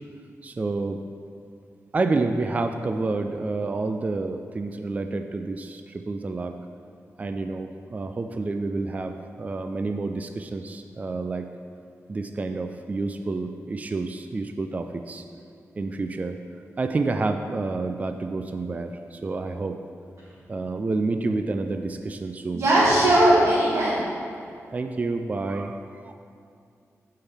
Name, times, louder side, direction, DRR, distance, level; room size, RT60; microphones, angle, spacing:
voice 1, 0.4-1.0 1.9-6.6 7.2-11.5 12.1-15.2 15.8-16.4 16.8-19.8 20.5-22.6 24.7-26.1, right 3 dB, 30° right, 7 dB, 0.3 m, -29 dB
voice 2, 22.5-24.0, right 1 dB, 85° right, -10 dB, 2.1 m, -19 dB
15.0 x 5.6 x 3.4 m, 2.4 s
wide cardioid pair, 145°, 5 cm